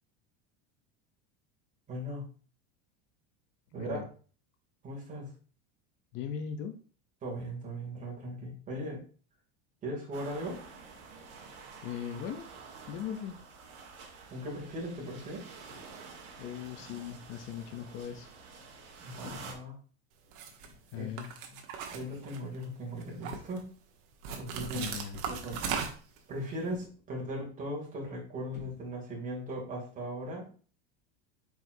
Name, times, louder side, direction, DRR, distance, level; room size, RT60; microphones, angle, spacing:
voice 1, 1.9-2.3 3.7-4.0 4.8-5.3 7.2-9.0 9.8-10.6 14.3-15.4 19.0-19.8 20.9-21.1 21.5-21.6 21.9-23.6 24.4-24.9 25.3-25.6 26.3-30.5, equal, 20° right, -3 dB, 2.6 m, -38 dB
voice 2, 6.1-6.8 11.8-12.5 12.9-13.4 16.4-18.3 20.9-21.3 24.7-25.2, left 8 dB, 35° left, 6 dB, 0.5 m, -39 dB
sound 1, 10.1-19.5, right 4 dB, 45° right, 1.8 m, -49 dB
sound 2, 19.2-19.7 20.6-20.9 22.0-22.5 23.6-23.8 25.3-25.8 26.6-27.1 28.5-29.2, left 3 dB, 55° left, 1.8 m, -53 dB
sound 3, 20.3-20.7 21.2-22.6 23.0-23.6 24.2-26.2, right 6 dB, 60° right, 1.3 m, -37 dB
7.7 x 4.8 x 2.7 m, 0.40 s
cardioid pair, 165°, 35 cm